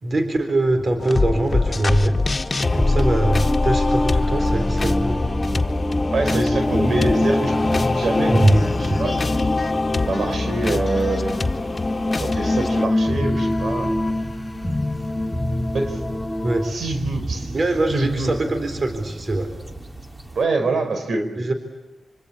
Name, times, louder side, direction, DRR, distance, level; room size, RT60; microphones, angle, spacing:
voice 1, 0.0-2.1 2.6-5.2 8.3-8.6 16.4-16.7 17.5-19.5 21.4-21.5, right 1 dB, 50° right, 7 dB, 4.0 m, -22 dB
sound 1, 0.7-2.0 2.6-16.7, left 1 dB, 20° left, 1.6 m, -24 dB
sound 2, 1.0-12.9, left 3 dB, 40° left, 1.9 m, -25 dB
voice 2, 6.1-9.4 10.0-11.4 12.2-13.9 15.7-16.0 16.6-17.5 17.9-18.4 20.3-21.2, right 2 dB, 70° right, 6 dB, 4.7 m, -25 dB
sound 3, 6.6-20.5, right 2 dB, 20° right, 2.4 m, -37 dB
26.0 x 25.5 x 8.6 m, 1.1 s
cardioid pair, 50°, 0 cm